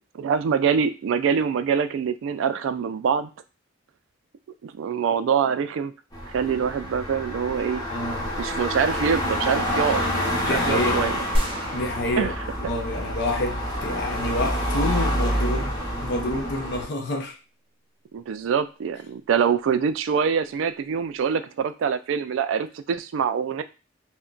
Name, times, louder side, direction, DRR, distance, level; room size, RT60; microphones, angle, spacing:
voice 1, 0.1-3.3 4.6-5.9 6.3-7.8 8.4-10.1 10.4-11.2 12.2-12.3 18.1-23.6, right 6 dB, 75° right, 0.3 m, -24 dB
sound 1, 6.1-16.9, equal, 20° left, 0.7 m, -27 dB
voice 2, 7.9-8.3 10.4-11.1 11.7-12.3 12.7-17.4, left 1 dB, 60° left, 0.5 m, -28 dB
sound 2, 11.3-13.6, equal, 30° right, 0.6 m, -30 dB
2.2 x 2.1 x 3.7 m
head